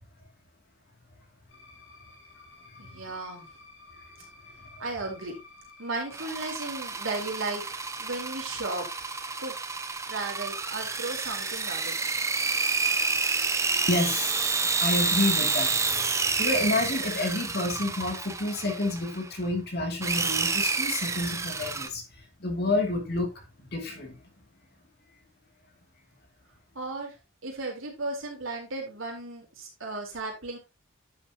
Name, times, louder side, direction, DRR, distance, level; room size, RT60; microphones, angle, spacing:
sound 1, 1.5-9.9, left 2 dB, 65° left, 6.4 m, -52 dB
voice 1, 2.8-3.5 4.8-5.3 5.8-8.9 9.4-9.5 10.1-11.9 26.8-27.1 27.4-30.6, right 3 dB, 70° right, 3.8 m, -35 dB
sound 2, 6.1-19.3 20.0-21.9, right 4 dB, 15° right, 0.7 m, -29 dB
voice 2, 13.9-14.4 14.6-16.1 16.4-22.0 22.4-24.2, left 2 dB, 50° left, 2.5 m, -29 dB
10.5 x 7.4 x 2.8 m
head